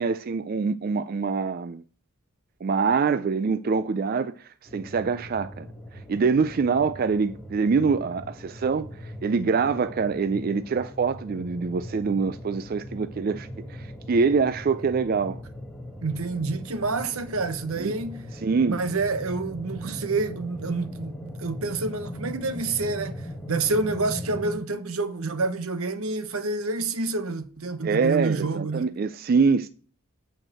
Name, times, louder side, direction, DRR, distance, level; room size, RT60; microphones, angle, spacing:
voice 1, 0.0-1.8 2.6-5.7 5.9-15.4 17.8-17.9 18.4-18.8 27.8-29.7, right 5 dB, 45° right, 0.4 m, -25 dB
sound 1, 4.7-24.6, equal, 5° left, 1.2 m, -40 dB
voice 2, 16.0-18.3 18.7-28.9, right 3 dB, 80° right, 0.9 m, -28 dB
9.0 x 4.6 x 7.5 m
head